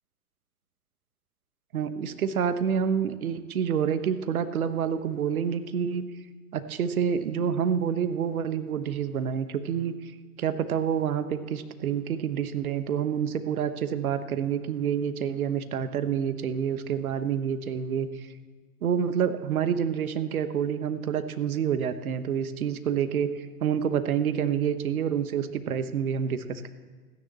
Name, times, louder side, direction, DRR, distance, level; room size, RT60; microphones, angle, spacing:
voice 1, 1.7-6.0 6.5-10.1 10.4-18.3 18.8-26.7, right 8 dB, 65° right, 11 dB, 1.2 m, -28 dB
14.0 x 10.0 x 7.8 m, 1.4 s
figure-of-eight pair, 105°, 47 cm